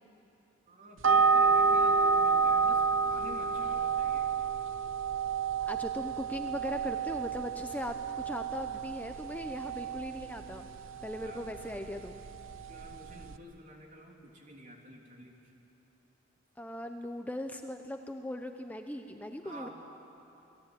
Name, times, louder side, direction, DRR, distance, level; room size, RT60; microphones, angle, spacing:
voice 1, 0.7-4.3 11.2-11.5 12.7-15.5 19.4-19.7, right 1 dB, 40° right, 0 dB, 3.6 m, -50 dB
sound 1, 1.0-13.4, right 5 dB, 85° right, 0.9 m, -30 dB
voice 2, 5.6-10.7 11.0-12.2 16.6-19.7, left 1 dB, 10° left, 5 dB, 0.8 m, -39 dB
28.0 x 19.5 x 9.2 m, 2.9 s
head